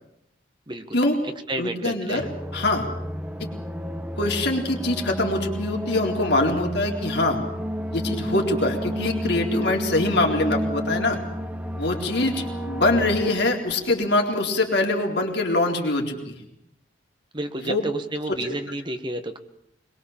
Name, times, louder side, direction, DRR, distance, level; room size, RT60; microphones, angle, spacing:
voice 1, 0.7-1.0 1.5-2.3 12.3-12.4 17.3-19.4, right 1 dB, 25° right, 7 dB, 1.6 m, -31 dB
voice 2, 1.6-2.9 4.2-7.4 7.9-11.2 11.8-16.5 17.6-17.8 18.3-18.4, left 2 dB, 55° left, 1 dB, 4.0 m, -24 dB
sound 1, 2.2-14.2, equal, 10° right, 1.4 m, -31 dB
23.0 x 22.0 x 7.4 m, 0.77 s
head